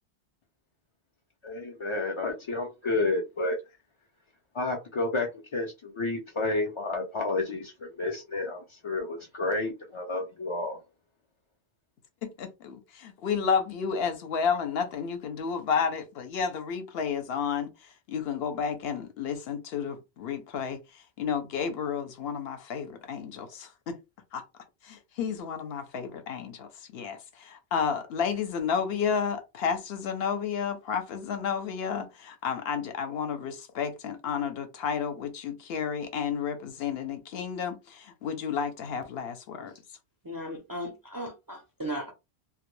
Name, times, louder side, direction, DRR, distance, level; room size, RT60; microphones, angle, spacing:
voice 1, 1.4-3.6 4.5-10.8, left 2 dB, 50° left, 0.3 m, -30 dB
voice 2, 12.2-24.0 24.3-24.4 24.8-39.7, left 6 dB, 70° left, 0.8 m, -31 dB
voice 3, 40.2-42.1, equal, 35° right, 0.3 m, -36 dB
2.1 x 2.1 x 3.0 m
omnidirectional pair, 1.1 m